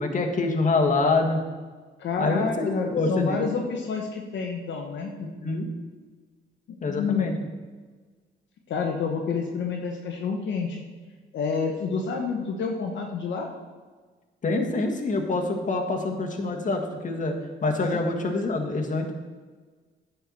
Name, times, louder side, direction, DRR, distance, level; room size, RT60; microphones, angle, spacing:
voice 1, 0.0-1.4 2.2-2.5 2.9-3.4 5.2-5.7 6.8-7.3 14.4-17.3 17.6-19.1, left 3 dB, 40° left, 2 dB, 1.6 m, -25 dB
voice 2, 2.0-5.1 6.9-7.3 8.7-10.8 11.3-13.5, left 5 dB, 65° left, 2 dB, 1.1 m, -28 dB
9.9 x 4.6 x 7.3 m, 1.4 s
cardioid pair, 90°, 20 cm